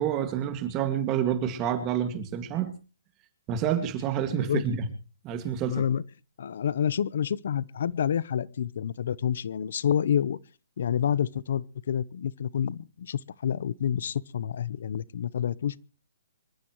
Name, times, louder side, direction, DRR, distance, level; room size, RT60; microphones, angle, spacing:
voice 1, 0.0-2.7 3.5-4.8 5.2-5.8, right 9 dB, 25° right, 2.0 m, -28 dB
voice 2, 4.3-4.6 5.7-6.0 6.4-10.4 10.8-15.8, left 9 dB, 60° left, 0.8 m, -28 dB
26.5 x 13.5 x 3.1 m
hypercardioid pair, 150°, 0 cm